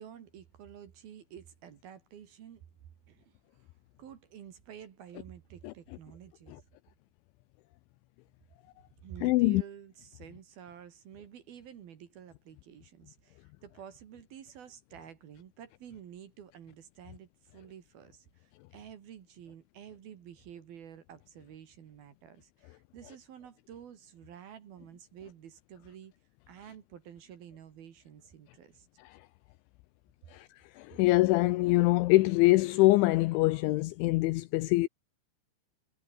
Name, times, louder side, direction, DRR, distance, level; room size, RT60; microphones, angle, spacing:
voice 1, 0.0-2.6 3.1-3.7 4.0-6.6 9.0-26.1 26.5-28.9, right 9 dB, 55° right, 3.3 m, -50 dB
voice 2, 9.2-9.6 30.3-30.5 30.8-34.9, left 20 dB, 85° left, 2.8 m, -24 dB
omnidirectional pair, 6.0 m